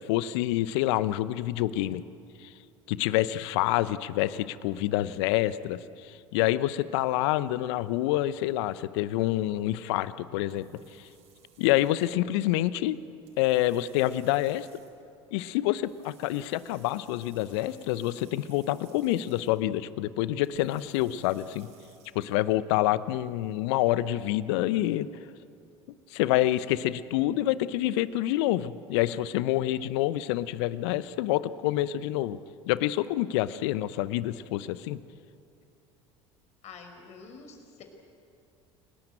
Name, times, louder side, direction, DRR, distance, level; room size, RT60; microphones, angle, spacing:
voice 1, 0.1-2.0 2.4-2.5 2.9-10.7 11.6-13.0 13.4-14.7 15.3-21.7 22.1-25.1 26.1-32.4 32.7-35.0, left 15 dB, 65° left, 16 dB, 0.9 m, -27 dB
sound 1, 7.5-22.4, right 7 dB, 50° right, 6.4 m, -61 dB
voice 2, 36.6-37.8, left 5 dB, 45° left, 4 dB, 5.4 m, -47 dB
30.0 x 18.5 x 9.0 m, 2.6 s
figure-of-eight pair, 70°, 15 cm